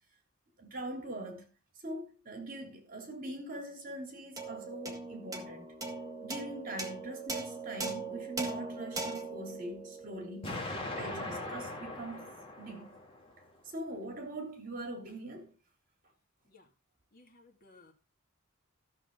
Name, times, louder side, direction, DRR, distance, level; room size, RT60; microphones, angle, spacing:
voice 1, 0.6-1.5 1.8-5.6 6.2-10.7 11.0-12.3 12.6-13.0 13.7-15.5, right 1 dB, 40° right, 3.3 m, -42 dB
sound 1, 4.4-11.0, right 3 dB, 15° right, 1.8 m, -40 dB
Explosion, 10.4-13.4, left 2 dB, 25° left, 2.4 m, -40 dB
voice 2, 17.1-17.9, left 3 dB, 45° left, 2.7 m, -59 dB
14.0 x 7.2 x 4.0 m
head